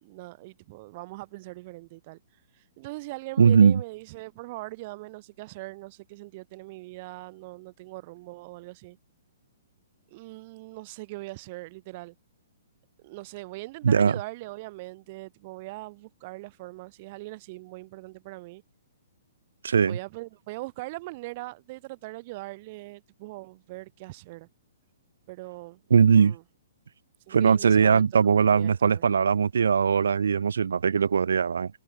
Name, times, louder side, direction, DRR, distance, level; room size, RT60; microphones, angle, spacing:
voice 1, 0.0-9.0 10.1-12.1 13.0-18.6 19.8-24.5 25.3-25.8 26.1-26.4 27.3-29.0, right 22 dB, 40° right, 1.1 m, -41 dB
voice 2, 3.4-3.8 13.8-14.1 19.6-20.0 25.9-26.4 27.3-31.7, right 6 dB, 65° right, 0.6 m, -20 dB
figure-of-eight pair, 120°, 0 cm